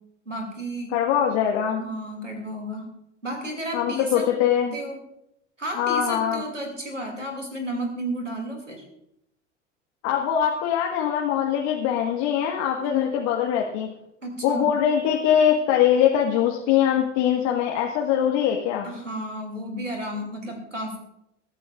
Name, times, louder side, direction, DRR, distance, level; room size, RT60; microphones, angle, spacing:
voice 1, 0.2-0.9 1.8-2.9 3.2-4.3 4.7-5.0 5.6-8.8 12.8-13.1 14.2-14.7 18.8-21.0, right 1 dB, 85° right, 4 dB, 3.0 m, -32 dB
voice 2, 0.9-1.8 3.7-4.8 5.8-6.4 10.0-13.9 14.4-18.9, left 9 dB, 45° left, 0 dB, 1.7 m, -22 dB
22.5 x 12.5 x 2.5 m, 0.78 s
figure-of-eight pair, 75°, 36 cm